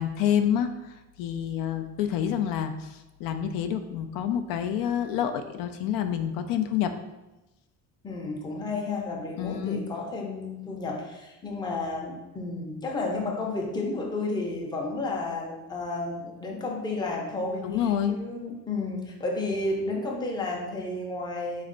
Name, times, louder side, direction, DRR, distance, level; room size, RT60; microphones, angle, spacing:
voice 1, 0.0-6.9 9.4-9.9 17.6-18.2, left 9 dB, 80° left, 8 dB, 0.5 m, -28 dB
voice 2, 8.0-17.7 18.1-21.7, left 2 dB, 15° left, -1 dB, 0.5 m, -32 dB
4.3 x 3.1 x 3.8 m, 1.0 s
cardioid pair, 170°, 33 cm